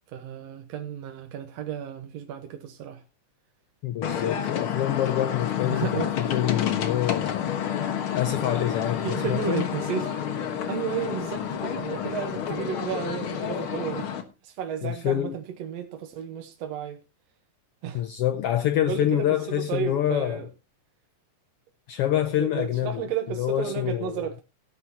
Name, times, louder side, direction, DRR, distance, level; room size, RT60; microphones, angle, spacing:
voice 1, 0.1-3.0 5.7-6.1 9.0-10.2 10.7-14.1 14.4-17.0 17.8-18.0 18.9-20.5 22.4-24.4, right 9 dB, 70° right, 2.1 m, -33 dB
voice 2, 3.8-7.5 8.1-9.7 14.8-15.4 17.9-20.5 21.9-23.0 23.4-24.2, left 12 dB, 80° left, 1.3 m, -26 dB
sound 1, 4.0-14.2, left 8 dB, 55° left, 1.9 m, -29 dB
17.5 x 9.5 x 2.8 m
omnidirectional pair, 3.3 m